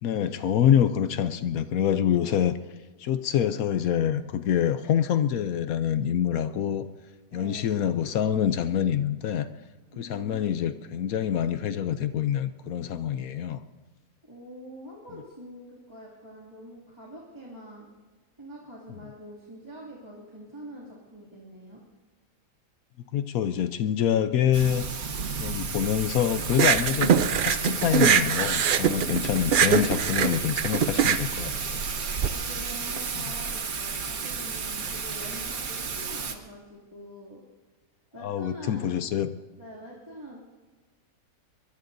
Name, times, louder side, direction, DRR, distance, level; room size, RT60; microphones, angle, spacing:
voice 1, 0.0-2.5 3.0-6.8 7.3-9.5 10.0-13.6 23.1-24.8 25.4-31.8 33.2-33.3 38.2-39.3, left 9 dB, 75° left, 11 dB, 1.1 m, -26 dB
voice 2, 7.3-7.7 9.9-10.6 14.3-17.9 18.4-21.8 29.0-30.1 32.3-37.4 38.1-38.9 39.6-40.4, equal, 20° right, -6 dB, 2.6 m, -44 dB
Thunder / Rain, 24.5-36.3, right 5 dB, 80° right, 1.7 m, -33 dB
sound 1, 26.5-32.3, right 7 dB, 60° right, 0.5 m, -23 dB
24.0 x 22.5 x 2.7 m, 1.3 s
omnidirectional pair, 1.5 m